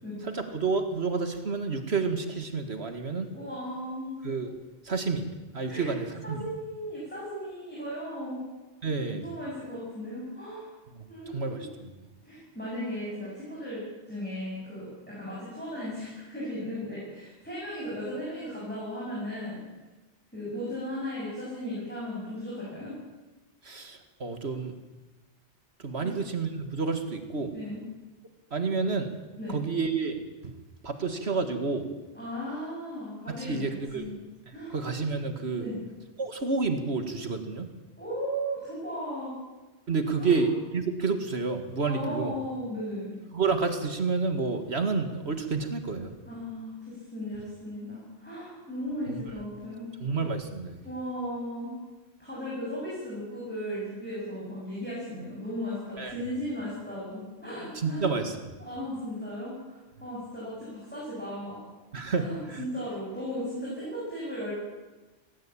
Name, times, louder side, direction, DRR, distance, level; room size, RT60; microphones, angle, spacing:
voice 1, 0.2-3.3 4.2-4.6 4.8-5.3 5.5-6.5 8.8-9.3 10.9-11.9 23.6-24.7 25.8-27.5 28.5-29.1 29.5-30.5 30.8-31.9 33.3-34.2 34.7-35.7 36.2-37.7 39.9-42.3 43.3-46.1 49.1-49.2 50.0-50.8 56.0-56.2 57.8-58.5 61.9-62.7, right 4 dB, 65° right, 7 dB, 2.1 m, -30 dB
voice 2, 3.3-4.1 5.7-5.9 6.2-8.4 9.2-10.7 11.1-11.7 12.2-19.6 20.3-23.0 26.0-26.1 27.5-27.8 29.4-29.6 32.1-34.1 34.5-34.8 35.6-35.8 38.0-39.4 40.2-40.4 41.8-43.1 46.2-49.9 50.8-51.8 52.2-58.1 58.6-61.6 62.1-64.5, equal, 10° left, -7 dB, 7.8 m, -36 dB
18.0 x 17.5 x 8.7 m, 1.1 s
omnidirectional pair, 1.2 m